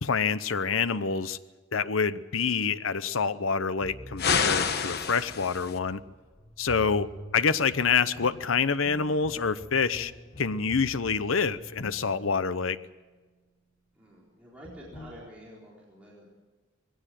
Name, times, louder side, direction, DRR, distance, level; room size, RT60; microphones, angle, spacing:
voice 1, 0.0-1.4 1.7-6.0 6.6-10.1 10.4-12.8, left 5 dB, 75° left, 14 dB, 0.8 m, -27 dB
sound 1, 3.8-13.2 14.6-15.1, equal, 35° left, 6.8 m, -47 dB
sound 2, 4.2-5.8, left 6 dB, 55° left, 1.2 m, -27 dB
voice 2, 13.9-16.3, equal, 5° right, -6 dB, 4.2 m, -49 dB
21.0 x 17.0 x 7.6 m, 1.3 s
head